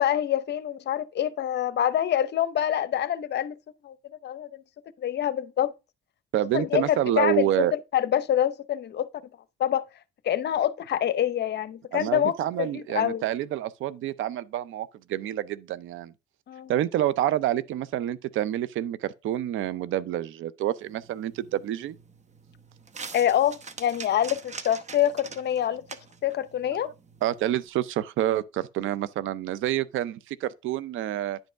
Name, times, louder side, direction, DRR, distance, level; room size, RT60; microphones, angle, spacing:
voice 1, 0.0-3.5 3.8-4.0 4.2-4.6 5.0-5.7 6.5-9.1 9.6-9.8 10.2-13.2 16.5-16.7 23.1-25.8 26.2-26.9, left 10 dB, 60° left, 0.7 m, -26 dB
voice 2, 6.3-7.7 11.9-16.1 16.7-22.0 26.8-26.9 27.2-31.4, right 13 dB, 80° right, 0.5 m, -28 dB
sound 1, 20.8-27.7, right 5 dB, 35° right, 0.9 m, -45 dB
10.0 x 5.3 x 3.4 m
cardioid pair, 90°, 20 cm